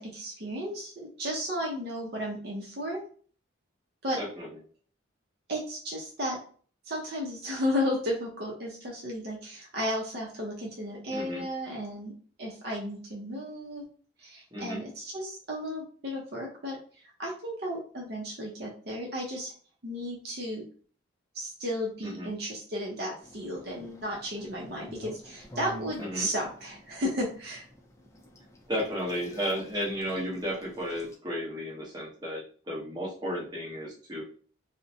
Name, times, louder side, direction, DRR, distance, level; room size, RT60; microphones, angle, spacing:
voice 1, 0.0-3.0 4.0-4.2 5.5-6.4 6.9-12.1 12.4-13.8 14.2-16.8 17.2-19.5 19.8-20.6 21.3-27.7, equal, 55° right, -2 dB, 0.6 m, -34 dB
voice 2, 4.2-4.5 11.1-11.4 14.5-14.8 22.0-22.3 26.0-26.3 28.7-34.2, equal, 20° right, -5 dB, 0.8 m, -33 dB
sound 1, 23.2-31.1, equal, 15° left, 0.4 m, -49 dB
2.5 x 2.1 x 2.7 m, 0.43 s
head